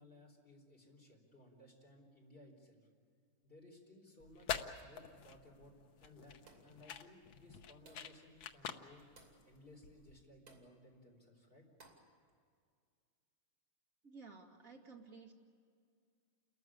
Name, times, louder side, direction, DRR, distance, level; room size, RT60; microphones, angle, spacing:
voice 1, 0.0-2.9 3.4-5.7 6.0-9.0 9.4-11.7, left 1 dB, 25° left, 0 dB, 4.4 m, -60 dB
sound 1, 4.2-10.2, left 8 dB, 70° left, 1.8 m, -46 dB
sound 2, 6.5-6.8 7.9-8.2 9.2-9.5 10.5-10.7 11.8-12.1, right 3 dB, 80° right, 3.8 m, -62 dB
voice 2, 14.0-15.3, right 4 dB, 40° right, 1 dB, 2.5 m, -55 dB
29.5 x 14.0 x 10.0 m, 2.2 s
omnidirectional pair, 2.3 m